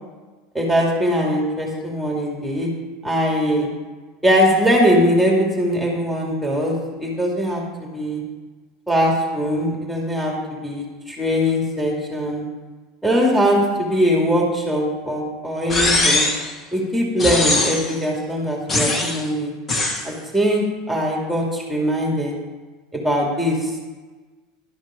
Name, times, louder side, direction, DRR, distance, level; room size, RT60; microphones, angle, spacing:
voice 1, 0.5-2.7 3.0-3.7 4.2-7.6 7.9-8.2 8.9-10.3 10.6-12.4 13.0-16.3 16.7-19.5 20.0-22.3 22.9-23.9, equal, ahead, -2 dB, 2.6 m, -21 dB
sound 1, 15.7-16.5 17.2-18.0 18.7-19.2 19.7-20.1, left 2 dB, 30° left, 1.5 m, -20 dB
12.0 x 5.0 x 5.2 m, 1.3 s
hypercardioid pair, 90°, 0 cm